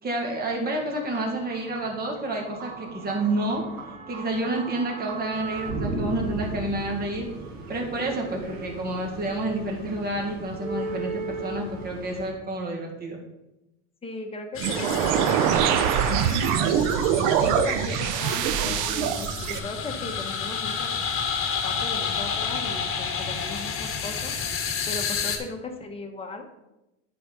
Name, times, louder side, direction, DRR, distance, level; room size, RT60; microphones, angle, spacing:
voice 1, 0.0-3.6 4.1-7.3 7.7-13.2, right 2 dB, 25° right, 0 dB, 1.9 m, -29 dB
sound 1, 0.7-12.3, right 3 dB, 90° right, 2.0 m, -36 dB
voice 2, 14.0-16.4 16.7-16.9 17.4-21.0 21.6-26.5, left 3 dB, 15° left, 2 dB, 1.5 m, -37 dB
sound 2, 14.5-25.4, left 6 dB, 35° left, 1.7 m, -30 dB
sound 3, 14.6-19.6, right 8 dB, 65° right, 0.9 m, -23 dB
10.0 x 4.3 x 5.4 m, 0.93 s
supercardioid pair, 105°, 37 cm